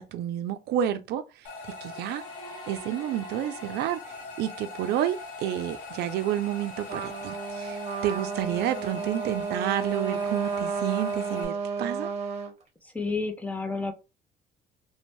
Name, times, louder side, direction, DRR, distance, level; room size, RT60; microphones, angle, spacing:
voice 1, 0.0-1.5 1.8-2.2 2.7-12.1, right 11 dB, 75° right, 0.5 m, -30 dB
sound 1, 1.4-11.4, left 3 dB, 50° left, 0.8 m, -42 dB
sound 2, 1.6-4.6, right 2 dB, 25° left, 1.1 m, -50 dB
Trumpet, 6.9-12.5, right 5 dB, 40° right, 0.9 m, -32 dB
voice 2, 12.8-13.9, left 4 dB, 10° left, 0.6 m, -30 dB
2.6 x 2.2 x 3.0 m
cardioid pair, 110°, 17 cm